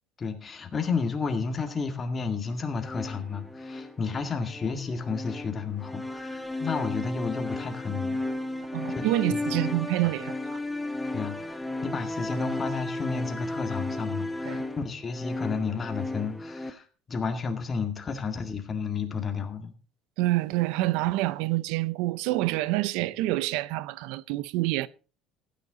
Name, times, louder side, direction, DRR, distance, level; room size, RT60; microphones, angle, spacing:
voice 1, 0.2-8.2 8.9-9.4 10.0-10.1 11.1-11.4 11.8-19.7, left 5 dB, 25° left, 1.9 m, -32 dB
sound 1, 2.8-16.7, left 2 dB, 5° left, 1.1 m, -34 dB
voice 2, 8.7-10.6 14.5-14.6 20.2-24.9, right 17 dB, 80° right, 0.5 m, -27 dB
15.5 x 9.6 x 4.0 m
cardioid pair, 140°, 0 cm